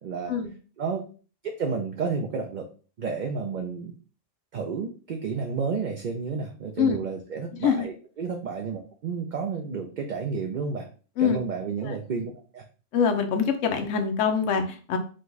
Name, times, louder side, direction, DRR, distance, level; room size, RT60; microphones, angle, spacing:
voice 1, 0.0-0.3 0.8-1.0 1.6-2.6 3.0-3.9 4.5-10.9 11.2-12.6, right 5 dB, 50° right, 3 dB, 0.6 m, -31 dB
voice 2, 12.9-15.0, left 6 dB, 80° left, 6 dB, 1.0 m, -24 dB
5.0 x 2.3 x 3.9 m, 0.38 s
omnidirectional pair, 1.3 m